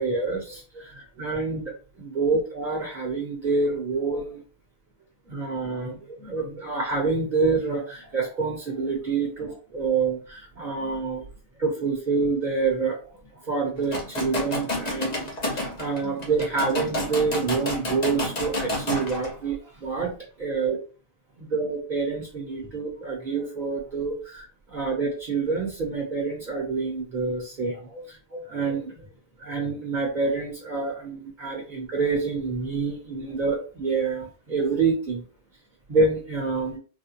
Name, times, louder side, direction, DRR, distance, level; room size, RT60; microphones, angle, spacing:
voice 1, 0.0-4.4 5.3-11.3 11.6-13.0 13.4-20.8 21.5-29.0 29.4-35.2 35.9-36.8, right 4 dB, 45° right, -2 dB, 1.1 m, -27 dB
sound 1, 13.8-19.3, left 1 dB, 40° left, 1.0 m, -30 dB
4.1 x 2.2 x 2.9 m, 0.37 s
omnidirectional pair, 1.1 m